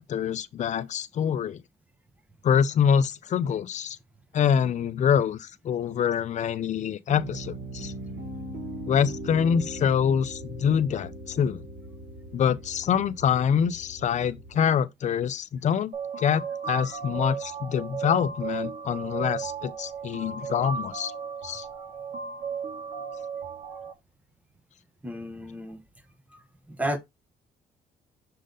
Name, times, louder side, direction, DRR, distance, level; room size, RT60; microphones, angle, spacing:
voice 1, 0.0-1.6 2.4-4.0 4.3-7.9 8.9-11.6 12.3-21.1 21.4-21.7, left 8 dB, 45° left, 0.5 m, -25 dB
Piano, 7.1-14.6, right 1 dB, 85° right, 3.1 m, -39 dB
sound 1, 15.9-23.9, right 6 dB, 70° right, 2.0 m, -35 dB
voice 2, 25.0-25.8 26.3-26.4 26.7-27.0, equal, 10° right, 0.8 m, -32 dB
6.5 x 3.9 x 3.8 m
cardioid pair, 160°, 17 cm